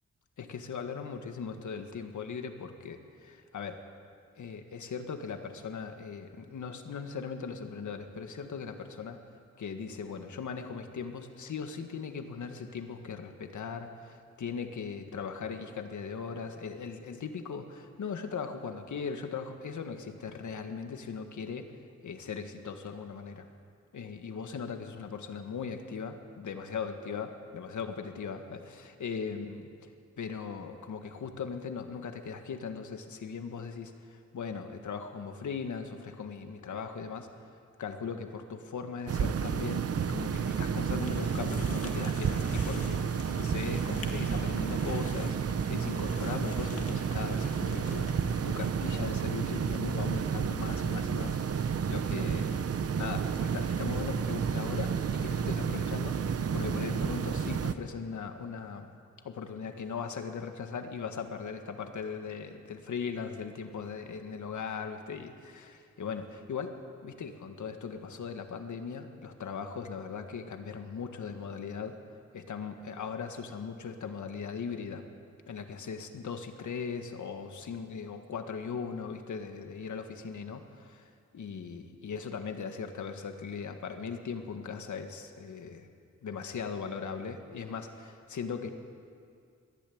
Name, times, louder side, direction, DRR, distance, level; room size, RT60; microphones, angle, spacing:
voice 1, 0.4-3.8 4.4-9.2 9.6-21.7 22.0-23.5 23.9-29.7 30.2-37.3 37.8-43.0 43.4-52.6 53.0-56.2 56.5-58.9 59.2-72.0 72.3-75.1 75.5-85.9 86.2-88.7, left 6 dB, 90° left, 6 dB, 1.7 m, -39 dB
sound 1, 39.1-57.7, right 6 dB, 55° right, 0.8 m, -31 dB
sound 2, 40.9-48.7, left 4 dB, 50° left, 2.1 m, -48 dB
21.0 x 14.5 x 8.7 m, 2.3 s
wide cardioid pair, 170°, 29 cm